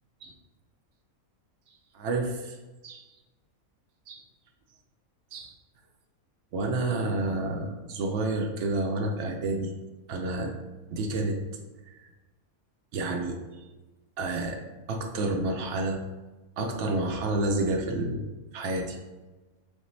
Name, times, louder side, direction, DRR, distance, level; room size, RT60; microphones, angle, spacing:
voice 1, 1.9-2.6 2.8-3.0 4.1-4.2 5.3-5.5 6.5-9.7 10.1-10.5 10.9-11.4 11.9-12.0 12.9-13.4 14.2-14.6 14.9-16.0 16.6-18.2 18.5-19.0, right 2 dB, 65° right, 3 dB, 0.8 m, -29 dB
6.4 x 2.1 x 3.1 m, 1.2 s
omnidirectional pair, 1.5 m